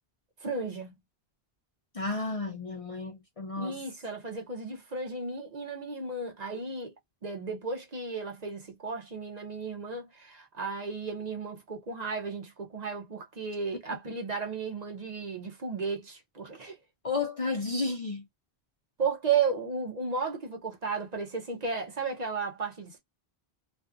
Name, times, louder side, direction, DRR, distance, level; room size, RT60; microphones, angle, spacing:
voice 1, 0.4-0.9 3.6-6.9 7.2-16.8 19.0-23.0, right 5 dB, 45° right, 0.7 m, -34 dB
voice 2, 1.9-3.8 17.0-18.2, left 3 dB, 45° left, 0.5 m, -32 dB
2.5 x 2.3 x 2.4 m
omnidirectional pair, 1.1 m